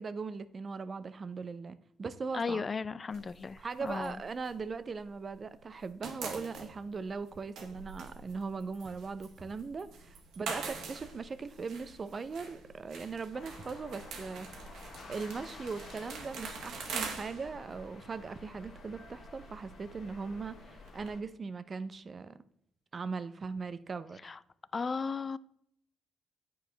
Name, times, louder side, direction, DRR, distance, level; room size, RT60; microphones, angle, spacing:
voice 1, 0.0-2.6 3.6-14.5 14.7-22.4 22.9-24.3, right 4 dB, 40° right, 0.6 m, -39 dB
voice 2, 2.3-4.2 24.2-24.4 24.7-25.4, left 4 dB, 35° left, 0.4 m, -35 dB
sound 1, 3.1-5.4 5.6-21.1, right 4 dB, 80° right, 1.6 m, -45 dB
sound 2, 13.3-21.2, left 2 dB, 60° left, 1.6 m, -51 dB
9.3 x 4.7 x 3.9 m
cardioid pair, 90°, 0 cm